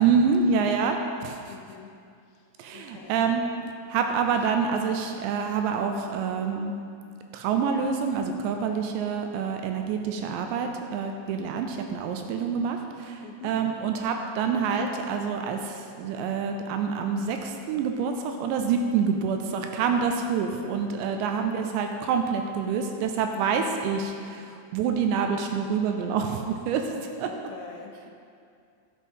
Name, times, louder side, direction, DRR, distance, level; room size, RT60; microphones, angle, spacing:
voice 1, 0.0-1.4 2.6-3.4 3.9-6.7 7.3-26.9 27.2-27.3, right 6 dB, 80° right, 4 dB, 2.7 m, -27 dB
voice 2, 1.5-1.9 2.3-2.5 2.7-3.3 4.5-4.6 13.2-13.5 21.1-21.7 27.2-28.1, left 6 dB, 80° left, 2 dB, 3.0 m, -46 dB
11.0 x 6.4 x 5.4 m, 2.4 s
omnidirectional pair, 5.3 m